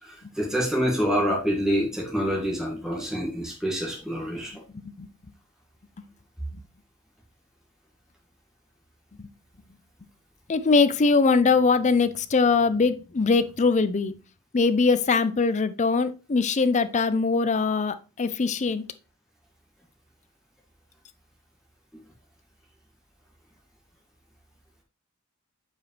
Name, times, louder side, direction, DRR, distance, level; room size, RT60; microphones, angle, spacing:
voice 1, 0.0-4.6, equal, ahead, 1.7 m, -27 dB
voice 2, 4.7-5.1 9.2-9.3 10.5-14.1 14.5-18.8, left 4 dB, 35° left, 0.5 m, -22 dB
8.3 x 4.9 x 3.1 m
head